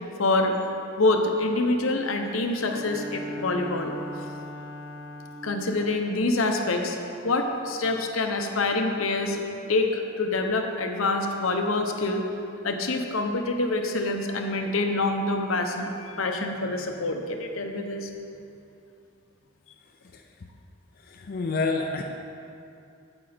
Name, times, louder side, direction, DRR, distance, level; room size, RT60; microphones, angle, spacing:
voice 1, 0.2-0.6 1.0-3.9 5.4-9.4 9.7-12.2 12.6-18.1, left 2 dB, 75° left, 4 dB, 0.9 m, -26 dB
Bowed string instrument, 2.6-5.7, left 1 dB, 25° right, 1.5 m, -38 dB
voice 2, 21.1-22.0, left 3 dB, 50° left, 2 dB, 0.5 m, -28 dB
9.0 x 8.8 x 4.3 m, 2.6 s
head